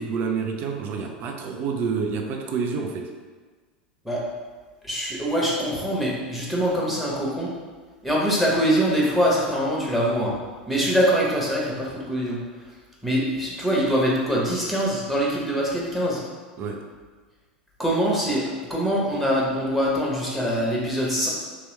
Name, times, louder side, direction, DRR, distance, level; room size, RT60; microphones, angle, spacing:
voice 1, 0.0-3.1 16.6-16.8, right 5 dB, 40° right, 3 dB, 0.4 m, -28 dB
voice 2, 4.8-7.5 8.0-10.4 10.7-12.4 13.0-16.2 17.8-18.4 18.7-21.3, equal, ahead, -5 dB, 1.1 m, -23 dB
3.3 x 2.9 x 3.1 m, 1.4 s
figure-of-eight pair, 85°, 5 cm